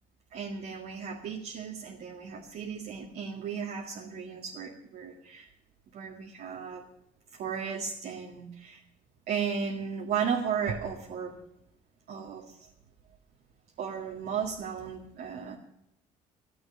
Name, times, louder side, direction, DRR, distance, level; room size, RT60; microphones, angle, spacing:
voice 1, 0.3-5.5 5.9-6.8 7.3-8.8 9.3-11.4 12.1-12.6 13.8-15.6, right 7 dB, 65° right, -1 dB, 1.9 m, -35 dB
14.5 x 8.0 x 8.7 m, 0.82 s
cardioid pair, 110°, 17 cm